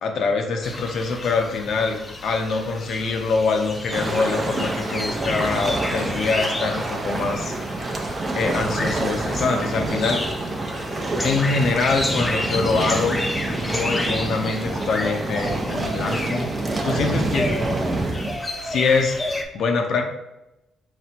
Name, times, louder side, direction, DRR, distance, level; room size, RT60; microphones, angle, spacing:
voice 1, 0.0-7.6 7.8-7.9 8.3-10.2 11.2-13.2 13.6-16.5 16.8-17.5 18.6-20.0, left 4 dB, 70° left, 4 dB, 0.6 m, -24 dB
sound 1, 0.6-19.4, left 2 dB, 20° left, 0.5 m, -31 dB
sound 2, 3.9-18.4, right 2 dB, 30° right, 0.6 m, -27 dB
4.1 x 2.2 x 4.2 m, 0.92 s
cardioid pair, 90°, 0 cm